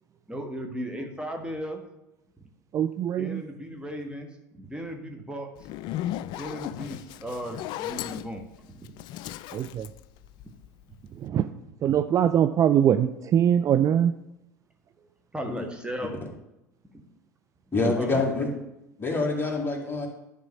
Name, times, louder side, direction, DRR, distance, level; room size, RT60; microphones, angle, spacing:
voice 1, 0.3-1.8 3.2-5.5 6.3-9.0 15.3-16.2 18.0-18.2, equal, 10° right, 3 dB, 1.4 m, -36 dB
voice 2, 2.7-3.4 9.5-9.9 11.2-11.5 11.8-14.1 17.8-17.9, right 9 dB, 35° right, 9 dB, 0.4 m, -22 dB
Zipper (clothing), 5.6-10.8, left 13 dB, 50° left, 0.3 m, -36 dB
voice 3, 17.7-18.5 19.0-20.1, left 3 dB, 25° left, 0 dB, 2.3 m, -26 dB
10.5 x 3.7 x 6.4 m, 0.90 s
hypercardioid pair, 75°, 10 cm